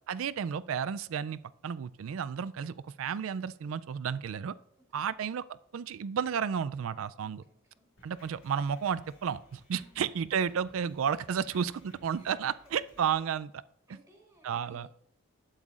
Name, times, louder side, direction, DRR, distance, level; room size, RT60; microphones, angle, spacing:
voice 1, 0.1-4.5 4.9-7.4 8.0-11.7 12.0-13.6 14.4-14.9, right 7 dB, 80° right, 16 dB, 0.4 m, -32 dB
voice 2, 7.2-7.9 9.8-10.0 12.1-13.0 13.9-14.9, right 1 dB, 10° right, -1 dB, 1.6 m, -60 dB
Drum kit, 8.0-13.3, left 1 dB, 90° left, 4.1 m, -59 dB
12.0 x 8.9 x 2.4 m, 0.75 s
head